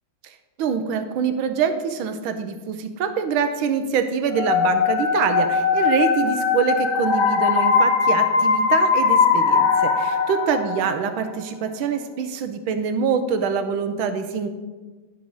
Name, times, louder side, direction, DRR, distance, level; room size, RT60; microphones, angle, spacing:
voice 1, 0.2-14.5, right 6 dB, 75° right, 8 dB, 1.4 m, -25 dB
sound 1, 4.3-11.1, left 5 dB, 75° left, 1.9 m, -20 dB
11.0 x 5.2 x 4.7 m, 1.3 s
omnidirectional pair, 2.3 m